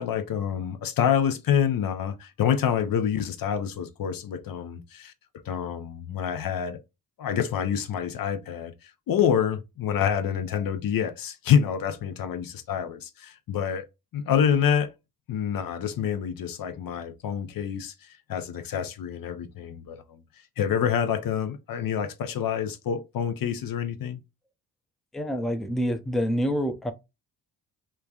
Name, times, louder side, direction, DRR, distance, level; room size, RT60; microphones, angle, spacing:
voice 1, 0.0-5.1 5.4-6.8 7.2-13.9 14.1-14.9 15.3-20.2 20.6-24.2, left 8 dB, 60° left, 0.6 m, -27 dB
voice 2, 25.1-26.9, equal, ahead, 0.5 m, -27 dB
3.1 x 2.2 x 2.3 m
supercardioid pair, 60°, 39 cm